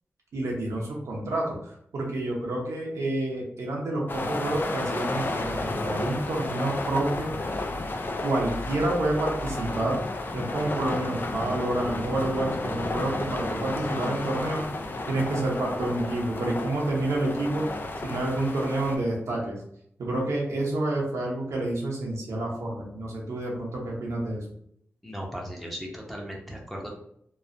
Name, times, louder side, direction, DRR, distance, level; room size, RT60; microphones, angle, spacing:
voice 1, 0.3-7.3 8.2-10.0 10.3-14.6 15.1-17.7 18.0-19.6 20.0-24.4, right 2 dB, 90° right, -2 dB, 0.8 m, -29 dB
sound 1, 4.1-19.0, left 2 dB, 45° left, 0.4 m, -32 dB
voice 2, 25.0-27.0, equal, 5° left, -1 dB, 0.8 m, -37 dB
3.0 x 2.0 x 2.5 m, 0.71 s
cardioid pair, 70°, 5 cm